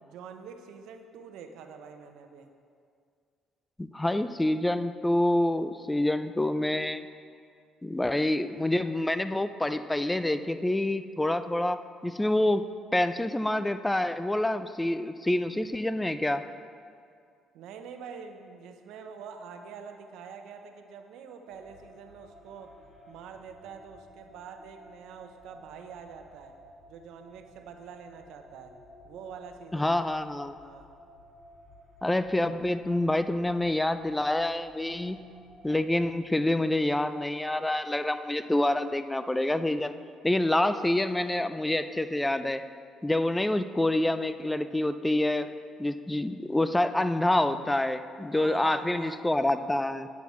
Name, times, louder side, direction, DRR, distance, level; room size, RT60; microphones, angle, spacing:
voice 1, 0.0-2.5 17.5-22.8 23.1-26.6 26.9-28.8 29.0-30.0 30.6-30.9 48.3-49.2, right 6 dB, 80° right, 6 dB, 0.7 m, -46 dB
voice 2, 3.8-7.0 7.8-11.8 12.0-12.6 12.9-16.4 29.7-30.5 32.0-35.2 35.6-39.9 40.2-42.6 43.0-45.5 45.8-50.1, left 1 dB, 10° left, 11 dB, 0.4 m, -27 dB
sound 1, 21.5-36.1, equal, 55° left, 1.5 m, -54 dB
9.3 x 8.9 x 3.1 m, 2.3 s
supercardioid pair, 75°, 0 cm